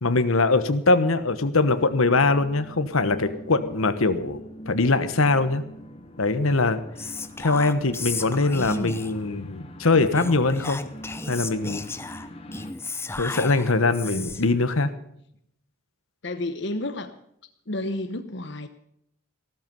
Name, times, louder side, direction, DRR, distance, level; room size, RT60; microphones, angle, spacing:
voice 1, 0.0-5.6 6.2-6.8 7.4-10.8 11.3-11.8 13.1-14.9, left 3 dB, 85° left, 11 dB, 1.3 m, -22 dB
sound 1, 1.6-12.7, equal, 25° left, 1.4 m, -43 dB
Whispering, 7.0-9.3 10.1-14.5, left 3 dB, 10° left, 0.6 m, -34 dB
voice 2, 14.0-14.4 16.2-17.1 17.7-18.7, left 1 dB, 55° left, 9 dB, 1.0 m, -31 dB
15.5 x 13.5 x 5.4 m, 0.72 s
head